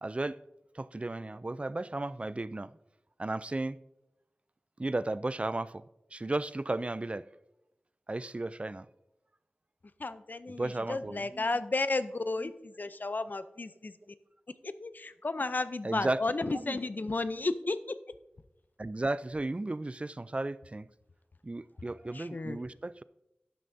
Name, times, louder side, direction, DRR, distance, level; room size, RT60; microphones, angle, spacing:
voice 1, 0.0-0.4 0.7-2.7 3.2-3.8 4.8-5.8 6.1-7.3 8.1-8.9 10.6-11.4 15.8-16.2 16.7-16.8 18.8-20.9 21.4-23.0, right 2 dB, 35° right, 0.4 m, -34 dB
voice 2, 10.0-14.2 14.6-18.0 22.1-22.6, left 3 dB, 55° left, 0.5 m, -33 dB
12.0 x 9.3 x 2.7 m
cardioid pair, 40°, 4 cm